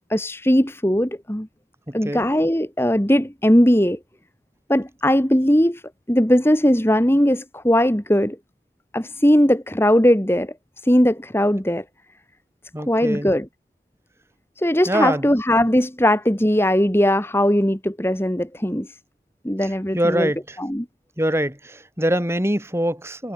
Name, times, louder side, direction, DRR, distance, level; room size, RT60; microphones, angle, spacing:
voice 1, 0.1-1.5 1.9-4.0 4.7-5.8 6.1-8.4 8.9-10.5 10.8-11.8 12.9-13.5 14.6-18.9 19.4-20.3 20.6-20.9, equal, 15° left, 2.0 m, -19 dB
voice 2, 1.9-2.2 12.7-13.3 14.9-15.3 19.6-20.6 21.2-23.3, equal, 15° right, 4.9 m, -24 dB
head